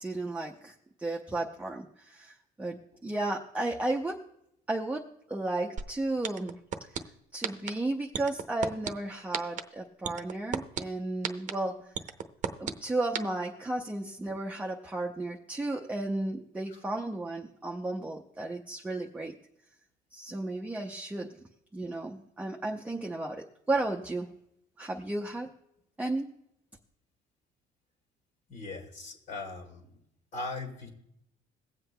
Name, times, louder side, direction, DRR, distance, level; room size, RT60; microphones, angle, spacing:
voice 1, 0.0-4.2 4.7-5.0 5.3-7.0 7.3-11.8 12.6-19.4 20.1-21.3 21.7-24.3 24.8-25.5 26.0-26.3, right 2 dB, 10° right, 0 dB, 0.6 m, -34 dB
sound 1, 5.8-5.9 6.2-7.0 7.4-7.7 8.1-8.9 9.3-9.6 10.0-10.8 11.2-11.5 11.9-12.7 13.1-13.2, right 8 dB, 45° right, 0.7 m, -31 dB
voice 2, 28.5-30.0 30.3-30.9, left 3 dB, 55° left, 1 dB, 1.9 m, -39 dB
22.5 x 7.7 x 2.2 m, 0.78 s
cardioid pair, 110°, 17 cm